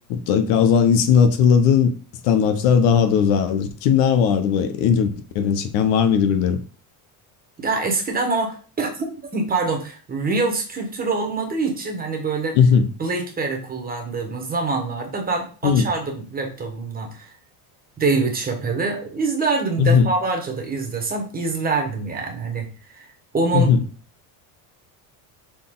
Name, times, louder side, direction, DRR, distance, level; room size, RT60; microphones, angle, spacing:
voice 1, 0.1-1.9 2.2-6.6 12.5-12.9 15.6-15.9 19.8-20.1 23.5-23.8, left 7 dB, 75° left, 1.1 m, -17 dB
voice 2, 7.6-12.6 13.0-17.3 18.0-23.1 23.3-23.7, right 3 dB, 20° right, 1.5 m, -25 dB
6.4 x 4.0 x 3.8 m
cardioid pair, 150°, 47 cm